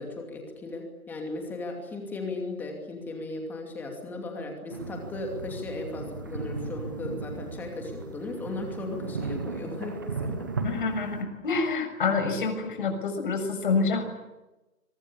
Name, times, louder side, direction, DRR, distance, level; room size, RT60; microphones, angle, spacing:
voice 1, 0.0-10.4, left 2 dB, 5° left, 2 dB, 2.6 m, -36 dB
sound 1, 4.7-11.2, right 4 dB, 15° right, 0.8 m, -36 dB
voice 2, 10.6-14.0, left 4 dB, 35° left, 6 dB, 6.6 m, -27 dB
26.5 x 24.0 x 8.6 m, 1.0 s
hypercardioid pair, 165°, 43 cm